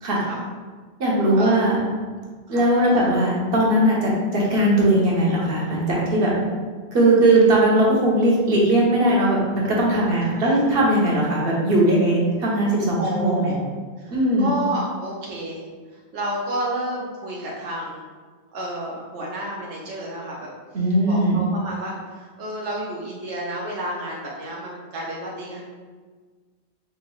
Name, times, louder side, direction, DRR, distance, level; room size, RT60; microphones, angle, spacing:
voice 1, 1.0-1.8 2.5-6.3 6.9-13.5 14.1-14.5 20.7-21.4, right 1 dB, 60° right, -4 dB, 1.1 m, -19 dB
voice 2, 10.3-10.7 13.0-13.6 14.0-15.6 15.9-18.0 18.5-20.5 21.0-25.6, right 1 dB, 85° right, -4 dB, 0.9 m, -31 dB
5.3 x 3.0 x 2.3 m, 1.5 s
omnidirectional pair, 1.2 m